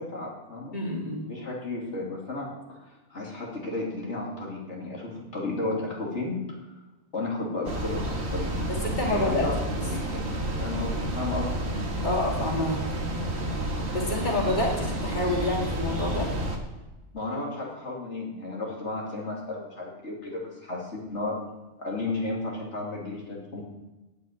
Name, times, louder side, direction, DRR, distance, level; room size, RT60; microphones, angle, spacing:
voice 1, 0.0-0.7 1.3-6.6 7.1-8.6 9.1-9.6 9.9-10.3 10.6-11.6 17.1-21.4 21.8-23.6, left 2 dB, 80° left, -3 dB, 2.9 m, -33 dB
voice 2, 0.7-1.3 8.7-9.5 9.7-9.8 12.0-12.8 13.9-16.3, left 2 dB, 40° left, -2 dB, 2.7 m, -28 dB
sound 1, 7.7-16.6, right 1 dB, 65° right, 1.9 m, -30 dB
9.4 x 8.1 x 9.0 m, 1.1 s
omnidirectional pair, 1.2 m